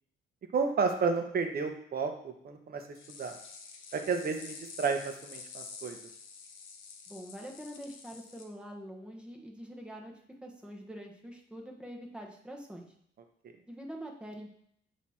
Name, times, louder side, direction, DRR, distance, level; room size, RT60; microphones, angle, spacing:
voice 1, 0.5-2.8 3.2-3.4 3.9-6.0, right 5 dB, 50° right, 5 dB, 1.0 m, -31 dB
sound 1, 2.9-8.4, left 5 dB, 85° left, 0.9 m, -48 dB
voice 2, 7.1-10.1 10.4-12.9 13.7-14.5, equal, 5° right, 0 dB, 1.3 m, -45 dB
8.0 x 3.1 x 4.3 m, 0.68 s
cardioid pair, 90°, 20 cm